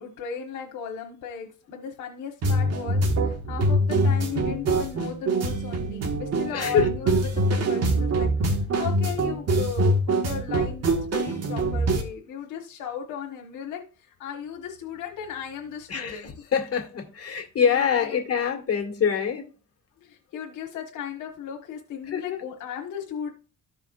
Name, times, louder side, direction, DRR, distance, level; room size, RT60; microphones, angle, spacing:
voice 1, 0.0-16.3 17.6-18.2 20.0-23.3, left 7 dB, 85° left, 1.3 m, -36 dB
Bossa-Jazz, 2.4-12.0, right 1 dB, 55° right, 1.6 m, -24 dB
voice 2, 6.5-6.9 15.9-19.5 22.1-22.4, left 7 dB, 50° left, 2.0 m, -25 dB
14.0 x 4.9 x 2.4 m
cardioid pair, 90°, 30 cm